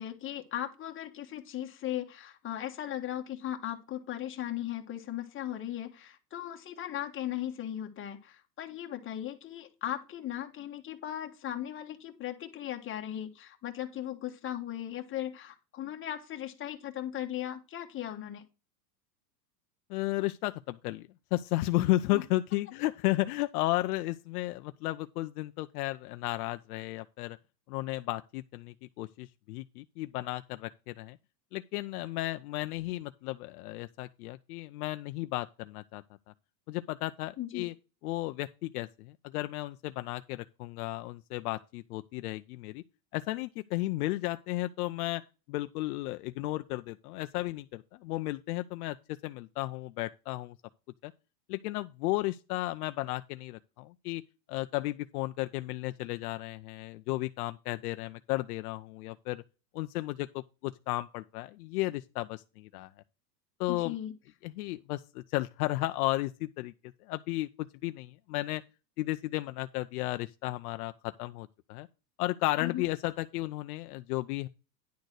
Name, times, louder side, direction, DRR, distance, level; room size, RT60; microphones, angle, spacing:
voice 1, 0.0-18.4 22.1-22.2 37.4-37.6 63.7-64.1 72.6-72.8, left 12 dB, 25° left, 1.4 m, -37 dB
voice 2, 19.9-27.4 27.7-31.2 31.5-36.0 36.7-37.7 38.0-42.8 43.1-45.2 45.5-50.6 51.0-51.1 51.5-54.2 54.5-59.4 59.7-62.9 63.6-64.0 64.4-66.7 67.0-68.6 69.0-71.9 72.2-74.5, left 18 dB, 65° left, 0.6 m, -34 dB
10.5 x 4.0 x 6.4 m
supercardioid pair, 125°, 50 cm